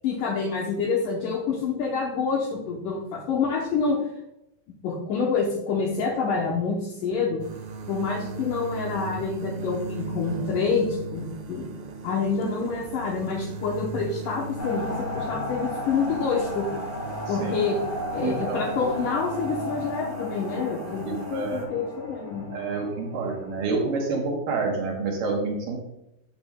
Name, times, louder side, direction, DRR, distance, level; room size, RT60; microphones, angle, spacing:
voice 1, 0.0-4.0 4.8-7.4 7.9-11.7 12.0-16.7 17.3-17.8 18.1-22.5, left 5 dB, 75° left, 0 dB, 2.0 m, -27 dB
sound 1, 7.4-21.6, right 2 dB, 90° right, 3.1 m, -38 dB
sound 2, 14.6-23.6, left 1 dB, 30° left, 1.8 m, -35 dB
voice 2, 17.3-17.6 18.2-18.6 21.3-21.7 22.5-25.8, right 3 dB, 65° right, 0 dB, 2.2 m, -28 dB
8.6 x 7.6 x 2.2 m, 0.82 s
omnidirectional pair, 4.8 m